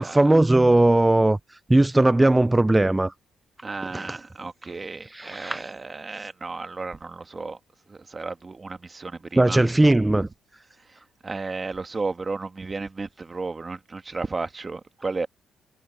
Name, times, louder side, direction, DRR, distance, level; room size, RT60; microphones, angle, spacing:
voice 1, 0.0-3.1 3.9-4.2 5.0-5.7 6.2-6.3 9.4-10.3, right 2 dB, 10° right, 0.5 m, -19 dB
voice 2, 3.6-7.6 7.9-9.6 10.1-10.2 11.2-15.3, right 3 dB, 30° right, 1.8 m, -33 dB
cardioid pair, 90°, 0 cm